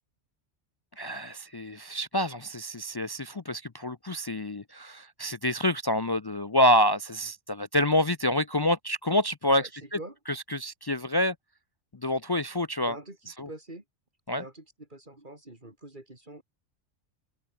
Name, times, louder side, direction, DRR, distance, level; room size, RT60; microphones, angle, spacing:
voice 1, 1.0-10.0 10.3-11.3 12.0-13.0 13.4-13.5 14.3-14.4, left 1 dB, 35° left, 0.3 m, -27 dB
voice 2, 9.6-10.2 12.9-13.8 14.3-16.4, right 2 dB, 45° right, 4.3 m, -45 dB
omnidirectional pair, 1.2 m